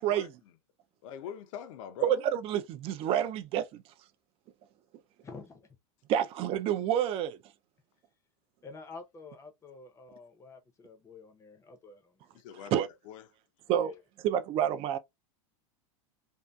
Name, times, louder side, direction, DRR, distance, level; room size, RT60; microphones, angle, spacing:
voice 1, 1.0-2.3 12.3-12.7 13.0-13.3, left 8 dB, 70° left, 0.5 m, -43 dB
voice 2, 2.0-3.8 6.1-7.4 12.7-12.9 13.7-13.9 14.2-15.0, right 10 dB, 35° right, 0.4 m, -28 dB
voice 3, 5.2-5.7 8.6-12.3 13.7-14.0, left 4 dB, 15° left, 0.5 m, -49 dB
2.6 x 2.3 x 2.2 m
supercardioid pair, 130°, 17 cm